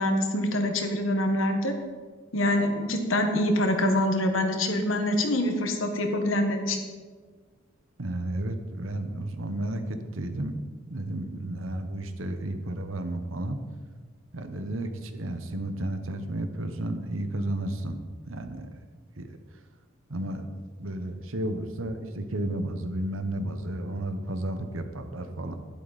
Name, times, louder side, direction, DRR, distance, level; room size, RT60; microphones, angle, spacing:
voice 1, 0.0-1.8 2.3-6.8, left 1 dB, 70° left, 5 dB, 1.6 m, -25 dB
voice 2, 8.0-10.5 10.9-13.6 14.3-18.7 19.2-19.3 20.1-25.6, right 1 dB, 80° right, 8 dB, 1.1 m, -32 dB
12.0 x 11.5 x 4.2 m, 1.5 s
head